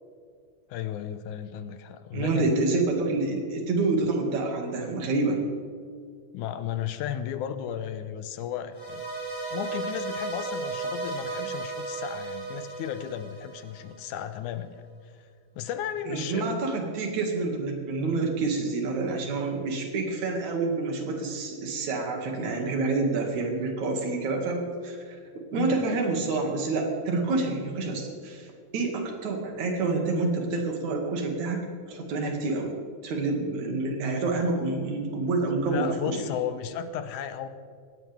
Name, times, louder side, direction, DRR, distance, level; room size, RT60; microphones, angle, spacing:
voice 1, 0.7-2.5 6.3-9.0 9.5-15.1 15.6-16.6 25.5-25.8 35.6-37.5, left 9 dB, 75° left, 10 dB, 2.0 m, -34 dB
voice 2, 2.1-5.4 16.1-25.2 25.5-32.8 33.0-36.2, right 3 dB, 60° right, 2 dB, 3.3 m, -28 dB
sound 1, 8.7-14.0, right 3 dB, 35° left, 3.9 m, -34 dB
19.0 x 16.5 x 3.5 m, 2.2 s
omnidirectional pair, 3.9 m